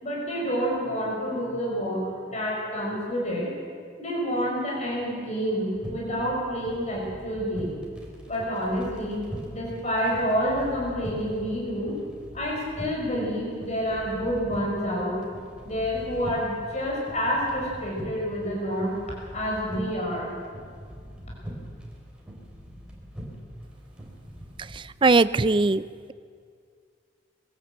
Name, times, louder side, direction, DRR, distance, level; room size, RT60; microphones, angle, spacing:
voice 1, 0.0-3.5 4.0-7.7 8.3-9.2 9.5-11.9 12.3-15.2 15.6-18.9 19.3-20.3, equal, 40° left, -3 dB, 5.8 m, -28 dB
sound 1, 5.7-24.8, equal, 5° right, 3.7 m, -42 dB
voice 2, 25.0-25.8, right 3 dB, 30° right, 16 dB, 0.5 m, -19 dB
22.0 x 16.0 x 8.1 m, 2.2 s
head